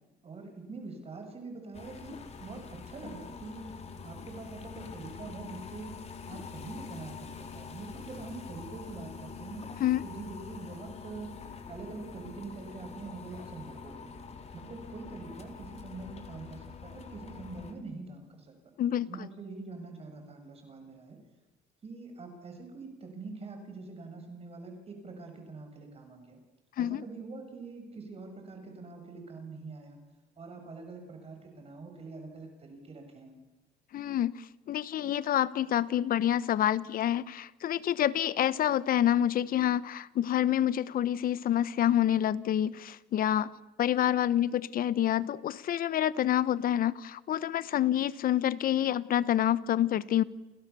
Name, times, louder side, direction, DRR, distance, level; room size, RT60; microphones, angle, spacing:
voice 1, 0.2-3.8 4.0-6.0 6.3-9.7 10.0-11.4 11.7-14.2 14.5-18.5 19.1-21.2 21.8-26.4 26.8-30.0 30.4-33.4, right 3 dB, 35° right, 4 dB, 6.8 m, -44 dB
sound 1, 1.7-17.7, left 5 dB, 40° left, 4.1 m, -45 dB
voice 2, 33.9-43.5 43.8-50.2, left 11 dB, 60° left, 18 dB, 1.2 m, -27 dB
30.0 x 28.5 x 7.1 m, 1.1 s
cardioid pair, 110°, 17 cm